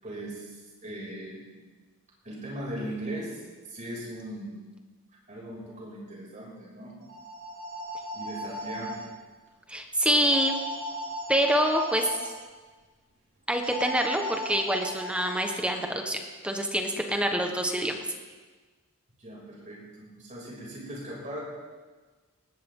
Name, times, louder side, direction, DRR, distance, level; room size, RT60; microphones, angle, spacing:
voice 1, 0.0-1.6 2.2-3.4 3.7-4.7 5.3-6.9 8.1-9.1 19.2-21.4, right 1 dB, 35° right, -4 dB, 6.9 m, -39 dB
sound 1, 7.0-9.0 10.2-12.2 13.6-15.6, equal, 60° right, 6.3 m, -36 dB
voice 2, 9.7-10.5 11.3-12.1 13.5-18.1, equal, 5° right, 3 dB, 1.4 m, -26 dB
20.0 x 17.5 x 3.9 m, 1.4 s
head